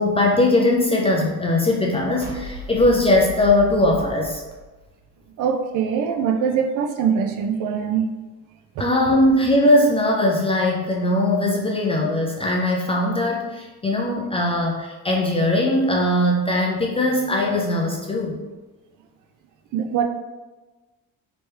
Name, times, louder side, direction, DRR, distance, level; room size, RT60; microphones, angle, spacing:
voice 1, 0.0-4.4 8.8-18.4, left 1 dB, 15° left, -2 dB, 0.3 m, -20 dB
sound 1, 2.2-5.4, right 2 dB, 40° right, 1.3 m, -37 dB
voice 2, 5.4-8.1 8.8-8.9 19.7-20.0, right 7 dB, 60° right, 5 dB, 0.5 m, -22 dB
3.2 x 3.0 x 3.2 m, 1.2 s
cardioid pair, 140°, 37 cm